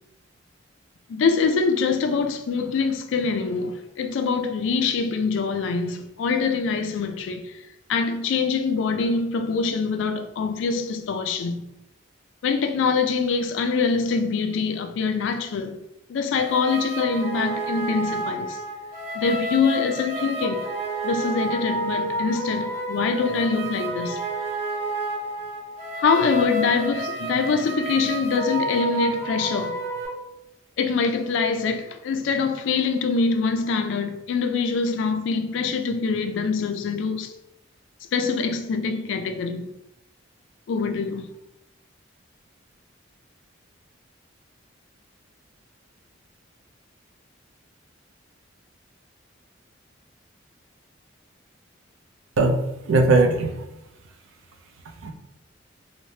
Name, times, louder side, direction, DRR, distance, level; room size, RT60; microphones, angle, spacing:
voice 1, 1.1-7.6 7.9-11.7 12.4-15.8 16.1-18.6 19.1-20.7 21.0-24.2 26.0-29.8 30.8-37.3 38.1-39.7 40.7-41.3, left 4 dB, 65° left, 0.3 m, -24 dB
sound 1, 16.3-30.1, right 1 dB, 35° right, 0.8 m, -30 dB
voice 2, 52.4-53.5 55.0-55.1, right 3 dB, 75° right, 0.4 m, -19 dB
3.1 x 2.1 x 2.7 m
head